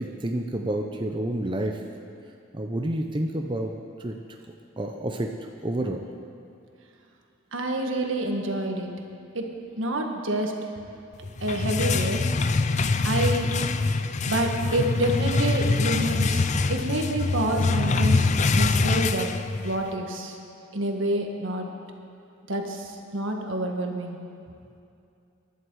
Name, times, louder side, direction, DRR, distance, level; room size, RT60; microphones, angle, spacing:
voice 1, 0.0-1.8 2.5-3.7 4.0-4.2 4.8-5.3 5.6-6.0, right 1 dB, 25° right, 3 dB, 0.6 m, -29 dB
voice 2, 7.5-8.9 9.3-9.4 9.8-10.5 11.4-12.2 13.0-13.5 14.3-18.3 18.5-19.3 19.6-20.4 20.7-21.7 22.5-24.2, right 1 dB, 75° right, 3 dB, 1.6 m, -27 dB
sound 1, 11.2-19.9, left 3 dB, 35° left, 0.4 m, -24 dB
21.0 x 11.0 x 4.8 m, 2.6 s
head